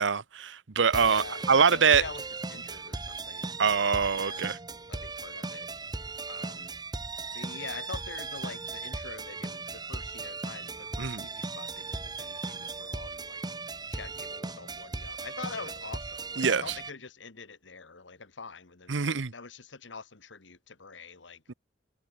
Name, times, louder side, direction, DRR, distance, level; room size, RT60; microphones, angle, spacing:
voice 1, 0.0-2.0 3.6-4.6 11.0-11.2 16.4-16.6 18.9-19.3 21.5-21.6, right 6 dB, 80° right, 0.9 m, -24 dB
sound 1, 0.9-16.9, right 3 dB, 25° right, 1.2 m, -38 dB
voice 2, 1.0-2.2 2.5-3.5 4.0-4.6 4.9-5.7 6.3-6.7 7.3-13.4 13.9-21.4, left 4 dB, 85° left, 1.7 m, -45 dB
head